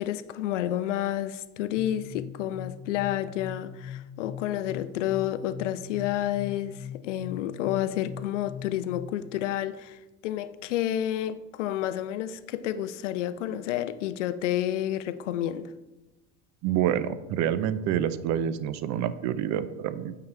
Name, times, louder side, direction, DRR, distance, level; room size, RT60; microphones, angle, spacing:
voice 1, 0.0-15.7, left 12 dB, 80° left, 0.5 m, -30 dB
sound 1, 1.8-9.3, left 8 dB, 20° left, 1.1 m, -41 dB
voice 2, 16.6-20.2, right 10 dB, 50° right, 0.6 m, -27 dB
8.5 x 3.9 x 4.5 m
hypercardioid pair, 70°, 36 cm